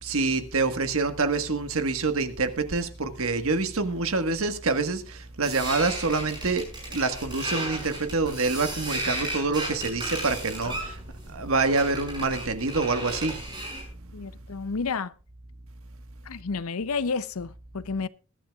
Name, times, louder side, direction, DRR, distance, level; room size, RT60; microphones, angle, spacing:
voice 1, 0.0-11.0 11.3-13.4, right 3 dB, 65° right, 1.5 m, -26 dB
sound 1, 5.4-13.9, right 1 dB, 20° right, 6.1 m, -35 dB
voice 2, 14.1-15.1 16.3-18.1, left 4 dB, 70° left, 0.6 m, -31 dB
21.5 x 11.5 x 2.4 m
head